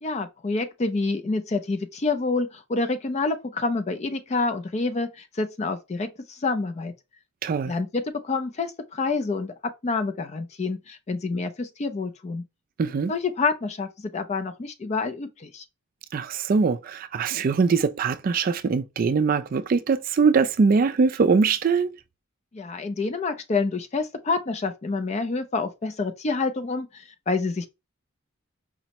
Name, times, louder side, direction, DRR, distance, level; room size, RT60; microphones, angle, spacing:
voice 1, 0.0-6.9 7.6-12.4 13.1-15.6 22.5-27.7, left 3 dB, 35° left, 0.4 m, -28 dB
voice 2, 7.4-7.7 12.8-13.1 16.1-22.0, right 5 dB, 45° right, 0.3 m, -22 dB
5.0 x 2.1 x 2.8 m
head